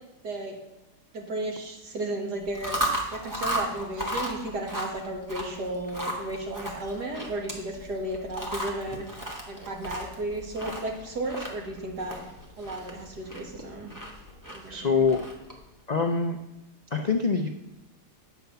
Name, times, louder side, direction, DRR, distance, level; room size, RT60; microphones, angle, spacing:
voice 1, 0.2-0.6 1.1-2.8 3.1-9.0 9.5-12.2 12.6-13.9 14.5-15.1, right 2 dB, 80° right, 1 dB, 2.3 m, -34 dB
Chewing mastication, 2.4-15.6, right 1 dB, 10° right, 1.4 m, -35 dB
voice 2, 14.7-15.2 15.9-16.4 16.9-17.5, left 5 dB, 60° left, 4 dB, 0.4 m, -24 dB
9.5 x 6.0 x 6.8 m, 0.96 s
omnidirectional pair, 1.7 m